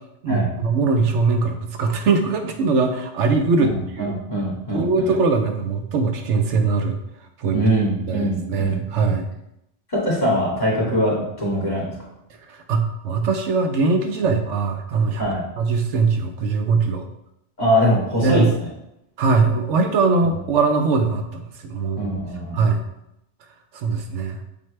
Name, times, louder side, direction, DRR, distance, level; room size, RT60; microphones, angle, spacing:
voice 1, 0.2-4.1 4.7-7.0 7.4-7.6 8.1-9.3 12.7-15.2 15.6-17.1 18.2-18.5 19.2-22.1 22.5-22.8 23.7-24.4, right 4 dB, 80° right, 5 dB, 1.1 m, -21 dB
voice 2, 3.7-5.1 7.5-9.1 9.9-11.9 14.2-14.3 15.2-15.4 17.6-18.7 20.2-20.4 22.0-22.8, equal, 35° left, -6 dB, 2.4 m, -23 dB
7.2 x 4.3 x 3.2 m, 0.83 s
omnidirectional pair, 1.2 m